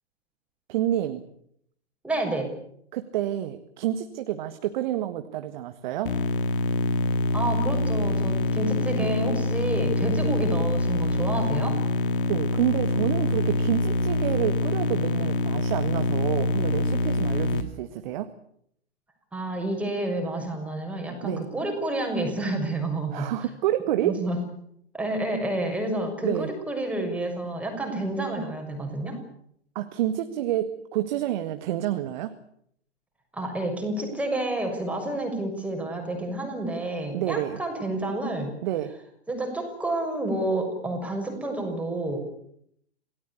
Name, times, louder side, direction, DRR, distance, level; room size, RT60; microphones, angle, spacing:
voice 1, 0.7-1.2 2.9-6.2 8.9-9.1 12.3-18.3 21.2-21.4 23.1-24.2 26.2-26.5 29.8-32.4 37.1-37.6 38.6-39.0, right 12 dB, 40° right, 9 dB, 1.8 m, -28 dB
voice 2, 2.0-2.5 7.3-11.8 19.3-23.3 24.0-24.4 24.9-29.2 33.3-38.5 39.3-42.2, right 1 dB, 5° right, 3 dB, 6.2 m, -29 dB
sound 1, 6.1-17.6, left 2 dB, 50° left, 2.5 m, -25 dB
27.0 x 18.0 x 8.6 m, 0.71 s
figure-of-eight pair, 115°, 34 cm